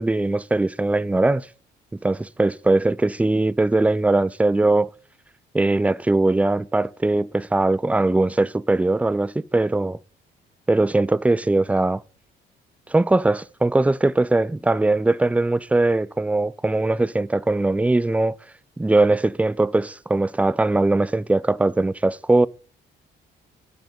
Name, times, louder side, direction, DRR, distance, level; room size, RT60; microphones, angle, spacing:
voice 1, 0.0-1.5 2.0-4.9 5.5-10.0 10.7-12.0 12.9-18.4 18.8-22.5, right 2 dB, 5° right, 0.3 m, -20 dB
9.1 x 6.0 x 5.1 m
cardioid pair, 90°, 20 cm